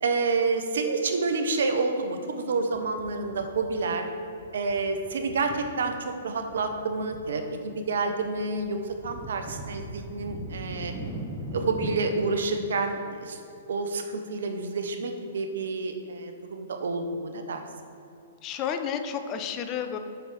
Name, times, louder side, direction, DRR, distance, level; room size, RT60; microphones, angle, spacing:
voice 1, 0.0-4.0 4.5-10.9 11.5-13.4 13.7-17.6, right 3 dB, 70° right, 5 dB, 0.9 m, -29 dB
sound 1, 2.7-4.1 4.3-6.0 6.3-7.2 7.5-12.0, right 2 dB, 20° right, 0.9 m, -40 dB
voice 2, 18.4-20.0, left 8 dB, 30° left, 7 dB, 0.6 m, -31 dB
5.9 x 5.4 x 6.3 m, 2.7 s
hypercardioid pair, 120°, 0 cm